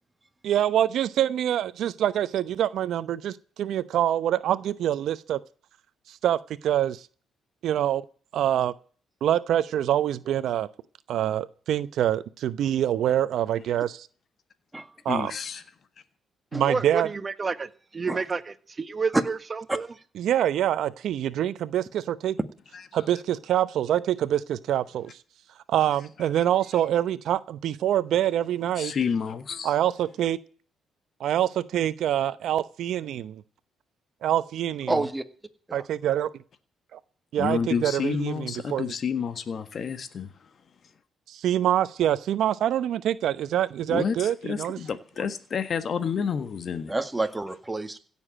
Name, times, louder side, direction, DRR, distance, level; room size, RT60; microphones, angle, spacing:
voice 1, 0.4-5.4 6.1-6.4 6.6-7.0 7.6-8.0 8.3-8.7 9.2-10.7 11.1-14.1 15.0-15.3 16.5-17.1 20.2-22.4 22.9-25.1 25.7-28.9 29.6-30.4 31.2-33.4 34.2-35.0 35.7-36.3 36.9-37.0 37.3-38.9 41.3-44.8, right 11 dB, 75° right, 0.9 m, -25 dB
voice 2, 15.1-15.6 26.2-26.4 26.7-26.8 28.8-29.7 37.4-40.5 43.9-46.9, left 6 dB, 50° left, 1.6 m, -30 dB
voice 3, 16.7-19.9, right 4 dB, 30° right, 1.3 m, -30 dB
voice 4, 34.9-35.2 35.7-35.9 46.9-48.0, right 2 dB, 15° right, 1.8 m, -28 dB
16.5 x 7.2 x 9.0 m
cardioid pair, 90°, 0 cm